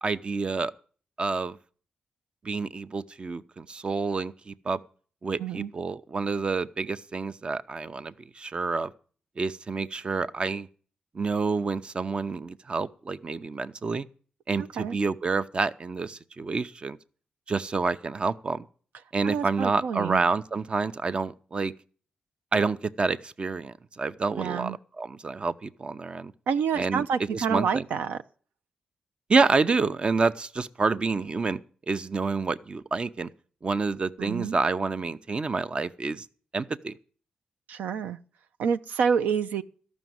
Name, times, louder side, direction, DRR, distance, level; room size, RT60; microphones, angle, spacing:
voice 1, 0.0-0.7 1.2-1.6 2.4-4.8 5.2-8.9 9.4-10.7 11.1-14.1 14.5-17.0 17.5-18.7 19.1-21.7 22.5-26.3 26.8-27.1 27.3-27.8 29.3-31.6 31.9-33.3 33.6-36.3 36.5-36.9, right 4 dB, 40° right, 0.7 m, -28 dB
voice 2, 5.4-5.7 14.6-15.0 19.2-20.2 24.4-24.8 26.5-28.2 34.2-34.6 37.7-38.2 38.6-39.6, right 6 dB, 85° right, 0.5 m, -28 dB
13.0 x 6.3 x 9.3 m
cardioid pair, 65°, 3 cm